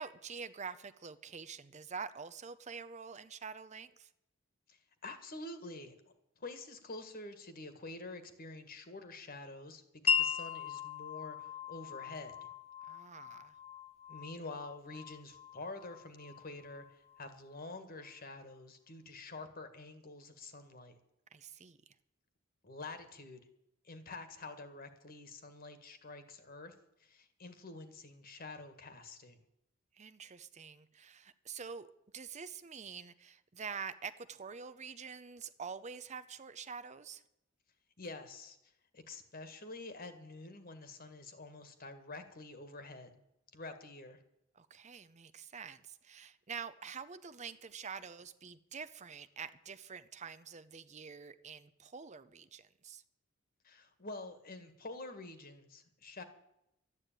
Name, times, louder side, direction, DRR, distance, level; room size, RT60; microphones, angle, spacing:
voice 1, 0.0-4.1 12.8-13.6 21.3-21.9 29.9-31.9 32.1-37.2 44.6-53.0, right 6 dB, 35° right, 0.6 m, -46 dB
voice 2, 4.7-5.9 6.4-12.5 14.1-20.9 22.6-23.4 23.8-26.7 27.0-29.4 38.0-38.6 38.9-43.2 43.5-44.2 53.6-56.2, left 2 dB, 50° left, 1.8 m, -48 dB
Wind chime, 10.1-17.7, left 7 dB, 30° left, 0.9 m, -39 dB
13.0 x 9.8 x 9.1 m
head